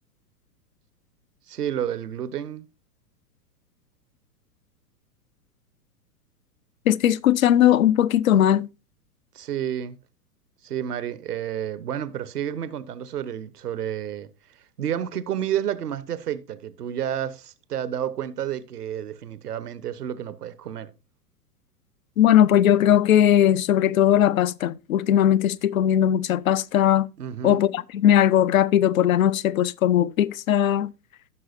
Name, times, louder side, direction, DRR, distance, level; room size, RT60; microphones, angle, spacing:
voice 1, 1.5-2.7 9.3-10.0 10.6-14.3 14.8-20.9 27.2-27.6, right 10 dB, 70° right, 1.1 m, -30 dB
voice 2, 6.9-8.7 22.2-27.1 27.4-30.9, left 11 dB, 55° left, 0.8 m, -19 dB
15.0 x 6.3 x 2.6 m
figure-of-eight pair, 105°, 48 cm